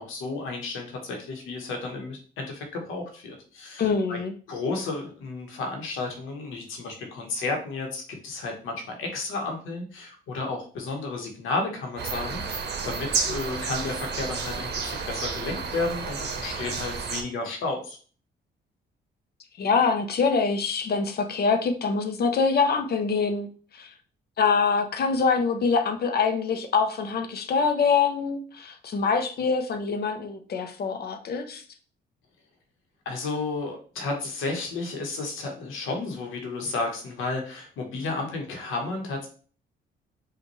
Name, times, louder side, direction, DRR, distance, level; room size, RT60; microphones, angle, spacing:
voice 1, 0.0-4.2 4.5-18.0 33.0-39.3, left 3 dB, 90° left, 3 dB, 1.2 m, -32 dB
voice 2, 3.8-4.3 19.6-23.5 23.7-23.9 24.4-31.6, left 5 dB, 50° left, 7 dB, 0.7 m, -24 dB
sound 1, 12.0-17.2, right 5 dB, 60° right, 0.8 m, -31 dB
5.2 x 2.5 x 3.1 m, 0.42 s
cardioid pair, 90°, 20 cm